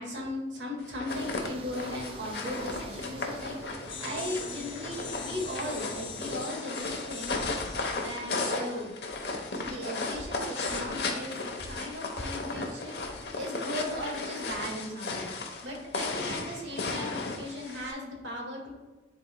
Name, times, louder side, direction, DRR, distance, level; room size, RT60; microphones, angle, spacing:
voice 1, 0.0-7.4 7.9-8.9 9.6-12.9 13.3-15.3 15.6-18.7, left 1 dB, 90° right, -1 dB, 1.8 m, -37 dB
sound 1, 0.8-17.9, left 3 dB, 65° left, 1.0 m, -35 dB
sound 2, 1.1-6.5, right 2 dB, 30° right, 0.4 m, -45 dB
sound 3, 3.9-9.6 10.6-10.8, left 6 dB, 30° left, 0.7 m, -44 dB
10.5 x 4.2 x 2.2 m, 1.2 s
head